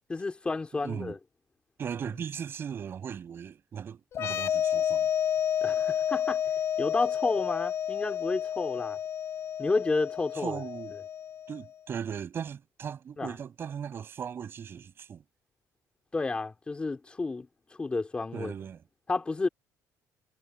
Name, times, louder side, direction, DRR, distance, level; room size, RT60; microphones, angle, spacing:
voice 1, 0.1-1.2 5.6-6.4 6.8-9.0 9.6-10.6 13.2-13.3 16.1-17.5 17.8-18.5 19.1-19.5, left 3 dB, 15° left, 3.6 m, -30 dB
voice 2, 0.8-1.1 1.8-5.1 10.3-11.0 11.5-15.2 18.3-18.8, right 7 dB, 35° right, 6.0 m, -38 dB
sound 1, 4.1-11.6, left 9 dB, 45° left, 3.3 m, -30 dB
cardioid pair, 160°, 7 cm